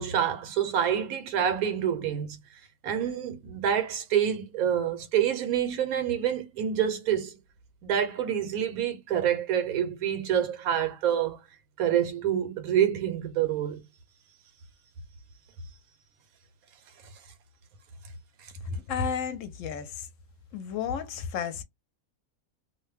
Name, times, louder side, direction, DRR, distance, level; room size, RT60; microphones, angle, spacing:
voice 1, 0.0-2.4 2.8-7.4 7.8-11.4 11.8-13.8, right 9 dB, 85° right, 1.2 m, -27 dB
voice 2, 18.7-20.1 20.5-21.6, left 6 dB, 70° left, 0.9 m, -32 dB
2.5 x 2.1 x 3.2 m
omnidirectional pair, 1.5 m